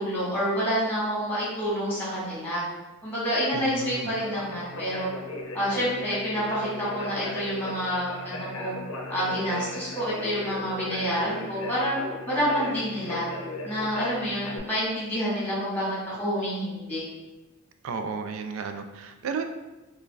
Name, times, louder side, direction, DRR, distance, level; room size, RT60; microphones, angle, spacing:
voice 1, 0.0-2.6 3.0-5.1 5.5-8.8 9.1-12.0 12.3-13.3 13.6-17.0, equal, 10° left, -8 dB, 1.3 m, -28 dB
voice 2, 3.5-4.1 17.8-19.4, right 5 dB, 70° right, 7 dB, 0.3 m, -33 dB
Conversation, 4.1-14.6, left 2 dB, 80° left, 0.6 m, -36 dB
4.5 x 2.2 x 2.3 m, 1.1 s
head